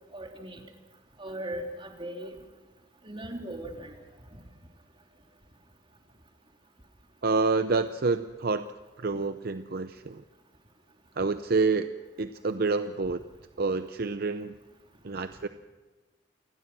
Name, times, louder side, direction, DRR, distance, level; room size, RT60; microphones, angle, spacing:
voice 1, 0.1-0.6 1.2-2.3 3.0-3.9, right 1 dB, 30° right, 2 dB, 3.3 m, -38 dB
voice 2, 7.2-8.7 9.0-10.2 11.2-11.9 12.2-13.2 13.6-14.5 15.0-15.5, right 4 dB, 55° right, 10 dB, 0.7 m, -28 dB
28.0 x 20.5 x 6.1 m, 1.3 s
head